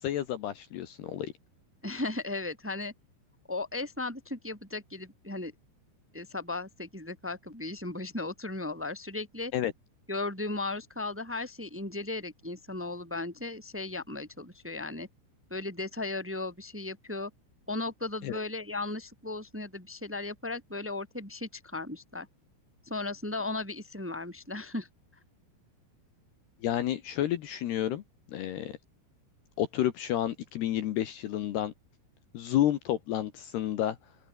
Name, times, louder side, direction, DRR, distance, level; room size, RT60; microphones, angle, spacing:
voice 1, 0.0-1.3 9.5-9.7 18.2-18.4 26.6-28.0 28.3-28.8 29.6-31.7 32.3-34.0, left 12 dB, 70° left, 3.1 m, -30 dB
voice 2, 1.8-2.9 3.5-5.5 6.1-9.5 10.1-15.1 15.5-17.3 17.7-22.3 22.8-24.9, left 2 dB, 5° right, 2.8 m, -36 dB
open air
omnidirectional pair, 5.6 m